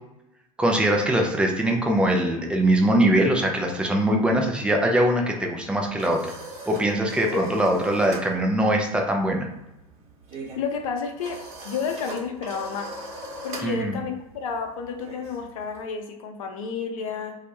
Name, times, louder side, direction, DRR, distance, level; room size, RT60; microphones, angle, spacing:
voice 1, 0.6-6.3 6.7-9.5 13.6-14.0, right 1 dB, 5° right, 1 dB, 0.4 m, -22 dB
sound 1, 5.6-8.3 8.6-8.9 9.1-15.8, right 1 dB, 35° right, 0.9 m, -40 dB
voice 2, 10.6-11.4 11.6-12.9 13.4-17.4, left 6 dB, 65° left, 5 dB, 0.5 m, -31 dB
2.1 x 2.0 x 2.8 m, 0.93 s
hypercardioid pair, 85°, 19 cm